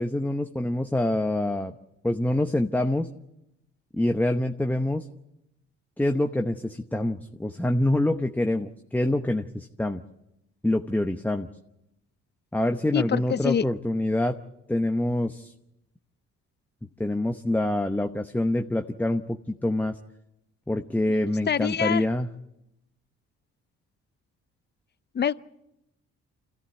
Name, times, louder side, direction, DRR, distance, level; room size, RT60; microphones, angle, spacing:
voice 1, 0.0-1.7 2.0-3.1 4.0-5.0 6.0-10.0 10.6-11.5 12.5-14.4 14.7-15.5 17.0-20.0 20.7-22.3, left 1 dB, 5° left, 5 dB, 0.9 m, -26 dB
voice 2, 12.9-13.6 21.5-22.0 25.1-25.3, left 8 dB, 35° left, 16 dB, 0.7 m, -25 dB
26.5 x 14.5 x 8.2 m, 0.87 s
cardioid pair, 90°, 30 cm